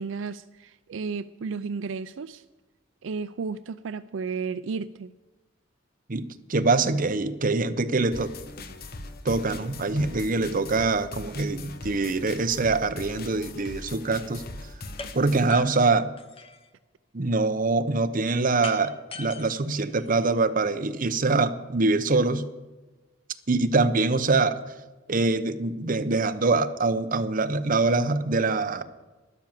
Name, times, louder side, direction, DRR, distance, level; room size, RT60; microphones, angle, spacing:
voice 1, 0.0-2.4 3.0-5.1, right 5 dB, 75° right, 13 dB, 0.4 m, -33 dB
voice 2, 6.1-8.3 9.2-14.4 15.1-16.1 17.1-22.5 23.5-24.6 25.1-28.8, right 3 dB, 45° right, 9 dB, 0.8 m, -24 dB
sound 1, 8.1-15.5, left 2 dB, 50° left, 1.0 m, -40 dB
sound 2, 15.0-15.1 15.5-16.7 18.6-20.6, left 4 dB, 30° left, 0.9 m, -41 dB
12.5 x 11.0 x 7.3 m, 1.2 s
head